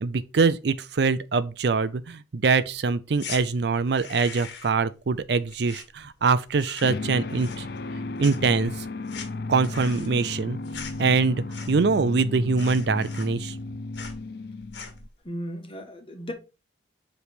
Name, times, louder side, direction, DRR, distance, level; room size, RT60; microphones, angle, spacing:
voice 1, 0.0-7.7 8.2-8.9 9.5-10.6 11.0-13.6, right 4 dB, 60° right, 0.4 m, -24 dB
sound 1, 3.2-3.4 3.8-4.8 5.1-6.3 6.5-7.0 7.3-7.9 8.2-12.0 12.3-12.4 12.6-13.7 13.9-14.2 14.6-15.1, left 6 dB, 70° left, 1.4 m, -41 dB
sound 2, 6.8-15.1, left 3 dB, 55° left, 0.4 m, -34 dB
voice 2, 15.2-16.3, equal, 30° left, 1.4 m, -35 dB
7.8 x 3.3 x 4.9 m
head